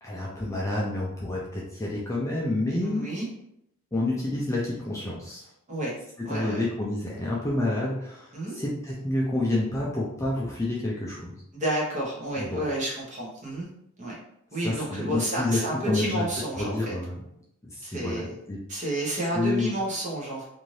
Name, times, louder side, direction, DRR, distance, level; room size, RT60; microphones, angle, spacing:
voice 1, 0.0-3.0 3.9-5.5 6.3-11.3 12.4-12.6 14.6-16.2 16.6-17.2 17.6-18.2 18.5-18.6 19.3-19.7, left 2 dB, 15° left, -4 dB, 0.4 m, -29 dB
voice 2, 2.8-3.3 5.7-5.9 6.2-6.6 8.3-8.6 11.5-13.7 14.0-14.1 14.5-16.9 17.8-18.3 18.7-20.4, right 1 dB, 35° right, -4 dB, 0.9 m, -30 dB
2.6 x 2.5 x 3.1 m, 0.76 s
head